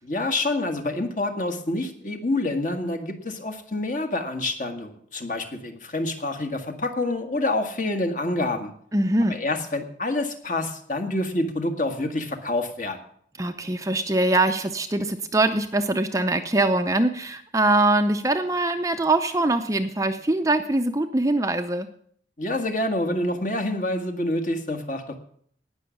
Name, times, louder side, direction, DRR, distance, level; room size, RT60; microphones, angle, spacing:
voice 1, 0.0-8.7 9.3-13.0 22.4-25.2, left 2 dB, 45° left, 6 dB, 1.7 m, -27 dB
voice 2, 8.9-9.3 13.4-21.9, right 2 dB, 15° right, 7 dB, 0.6 m, -23 dB
18.0 x 6.3 x 7.1 m, 0.63 s
head